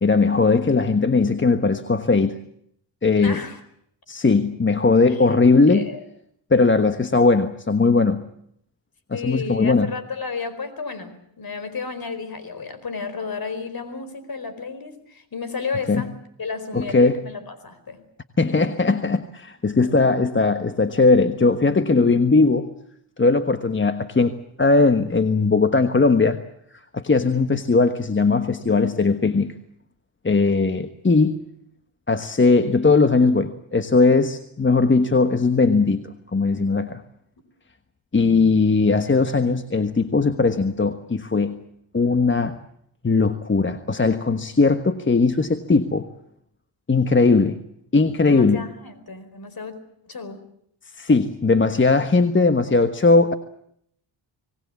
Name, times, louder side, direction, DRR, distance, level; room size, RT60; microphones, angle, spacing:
voice 1, 0.0-2.4 3.0-3.4 4.1-5.9 6.5-8.2 9.1-9.9 15.9-16.1 16.7-17.2 18.4-22.7 23.2-26.4 26.9-29.5 30.2-31.4 32.1-36.0 36.3-37.0 38.1-41.6 41.9-42.6 43.0-46.1 46.9-47.6 47.9-48.6 51.0-53.3, left 3 dB, 25° left, 9 dB, 1.3 m, -19 dB
voice 2, 3.1-3.6 5.1-5.3 5.7-6.0 9.1-16.1 16.4-18.0 19.8-20.1 38.2-38.6 48.2-49.8 50.0-50.4, left 4 dB, 45° left, 13 dB, 4.6 m, -33 dB
25.5 x 19.5 x 8.4 m, 0.71 s
supercardioid pair, 60°, 49 cm